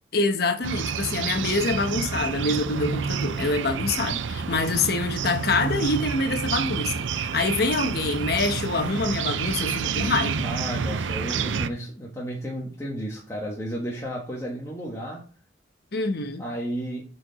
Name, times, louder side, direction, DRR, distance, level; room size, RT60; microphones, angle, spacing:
voice 1, 0.1-10.5 15.9-16.5, left 3 dB, 55° left, 1.0 m, -26 dB
sound 1, 0.6-11.7, right 6 dB, 80° right, 0.5 m, -29 dB
voice 2, 10.4-15.2 16.4-17.0, equal, 15° left, 1.5 m, -33 dB
8.4 x 4.6 x 4.1 m
head